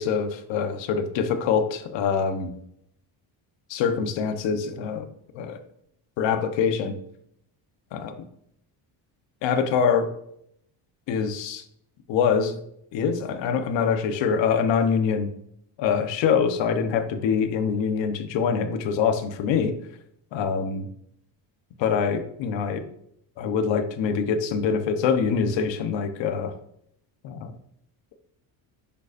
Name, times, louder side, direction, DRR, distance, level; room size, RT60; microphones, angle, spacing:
voice 1, 0.0-2.5 3.7-5.1 5.3-5.6 6.2-6.9 7.9-8.2 9.4-10.1 11.1-11.6 12.1-12.6 12.9-15.3 15.8-19.7 20.3-20.9 21.8-22.8 23.4-26.5 27.2-27.5, left 6 dB, 80° left, 8 dB, 1.2 m, -24 dB
10.5 x 6.9 x 2.6 m, 0.73 s
cardioid pair, 145°, 44 cm